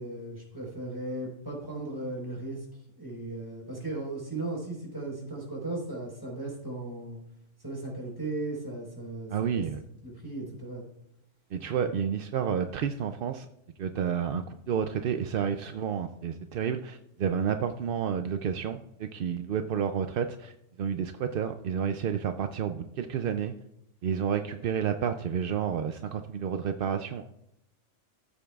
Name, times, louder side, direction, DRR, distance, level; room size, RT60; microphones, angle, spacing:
voice 1, 0.0-2.7 3.0-7.2 7.6-9.6 10.0-10.8 11.7-11.9, right 2 dB, 15° right, -3 dB, 4.1 m, -36 dB
voice 2, 9.3-9.8 11.5-13.5 13.8-20.5 20.8-23.5 24.0-27.2, right 7 dB, 65° right, 8 dB, 0.5 m, -30 dB
14.0 x 8.4 x 2.4 m, 0.79 s
omnidirectional pair, 1.3 m